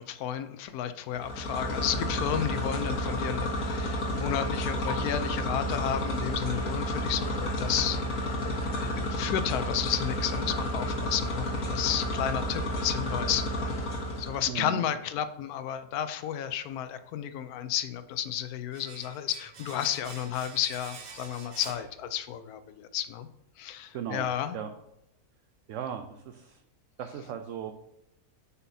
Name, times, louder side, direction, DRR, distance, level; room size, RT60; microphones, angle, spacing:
voice 1, 0.0-13.4 13.7-13.9 14.2-23.3 23.6-24.6, left 10 dB, 85° left, 11 dB, 1.1 m, -32 dB
sound 1, 1.1-14.5, left 1 dB, 65° left, 1.8 m, -31 dB
voice 2, 14.5-14.9 23.9-24.3 24.5-24.7 25.7-26.6 27.0-27.7, right 8 dB, 65° right, 6 dB, 0.9 m, -37 dB
Domestic sounds home sounds, 18.7-22.5 22.8-22.9, right 5 dB, 45° right, 0.6 m, -47 dB
8.1 x 5.7 x 2.7 m, 0.83 s
omnidirectional pair, 1.6 m